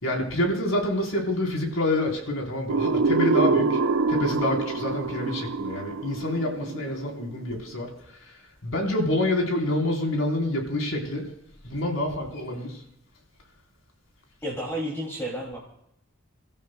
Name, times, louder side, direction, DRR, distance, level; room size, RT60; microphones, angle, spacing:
voice 1, 0.0-3.8 4.1-7.9 8.2-8.3 8.6-11.2 11.6-12.8, left 1 dB, 75° left, 0 dB, 3.9 m, -27 dB
sound 1, 2.7-7.4, right 4 dB, 90° right, 0.6 m, -25 dB
voice 2, 14.4-15.6, equal, 10° left, -4 dB, 2.6 m, -31 dB
29.0 x 14.0 x 2.3 m, 0.76 s
head